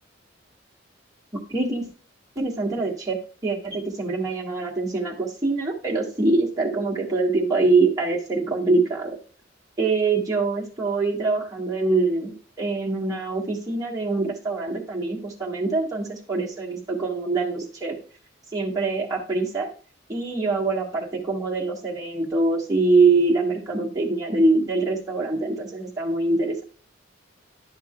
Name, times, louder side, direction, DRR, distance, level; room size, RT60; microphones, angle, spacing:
voice 1, 1.3-1.9 2.3-9.2 9.8-18.0 18.5-19.7 20.1-26.6, right 3 dB, 20° right, -5 dB, 1.6 m, -24 dB
11.0 x 5.7 x 2.3 m, 0.38 s
head